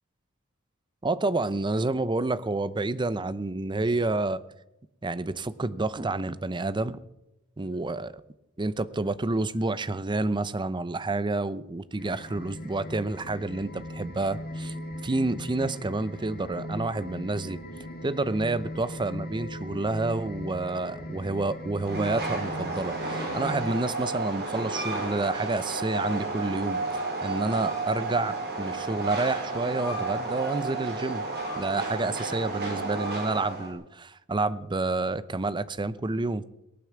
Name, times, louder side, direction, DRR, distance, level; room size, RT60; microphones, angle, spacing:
voice 1, 1.0-4.4 5.0-7.0 7.6-8.1 8.6-14.7 15.0-17.6 18.0-31.3 31.6-36.4, right 2 dB, 20° right, 0.6 m, -29 dB
sound 1, 12.0-23.7, left 1 dB, 45° left, 1.6 m, -39 dB
Train, 21.8-33.7, right 3 dB, 50° right, 5.1 m, -32 dB
18.5 x 9.2 x 7.4 m
head